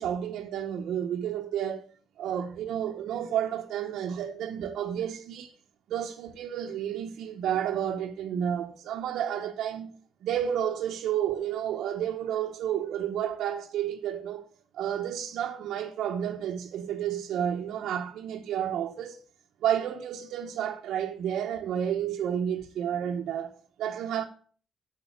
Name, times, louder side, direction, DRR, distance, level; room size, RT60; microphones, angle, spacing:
voice 1, 0.0-1.9 2.2-5.5 5.9-10.0 10.2-14.5 14.7-19.2 19.6-24.2, right 9 dB, 75° right, 0.9 m, -31 dB
7.9 x 6.4 x 7.2 m
cardioid pair, 90°, 0 cm